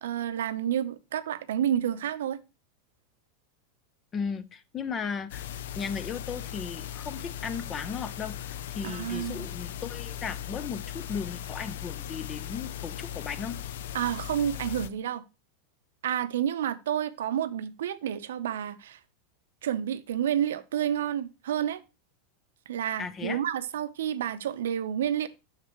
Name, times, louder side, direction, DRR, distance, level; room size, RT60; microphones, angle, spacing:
voice 1, 0.0-2.4 8.8-9.5 13.9-15.2 16.0-19.0 19.6-21.8 22.7-25.3, right 10 dB, 85° right, 0.7 m, -30 dB
voice 2, 4.1-5.5 5.8-13.6 23.0-23.4, left 6 dB, 25° left, 0.7 m, -36 dB
sound 1, 5.3-14.9, left 10 dB, 75° left, 0.5 m, -38 dB
6.6 x 6.6 x 3.0 m
supercardioid pair, 130°, 0 cm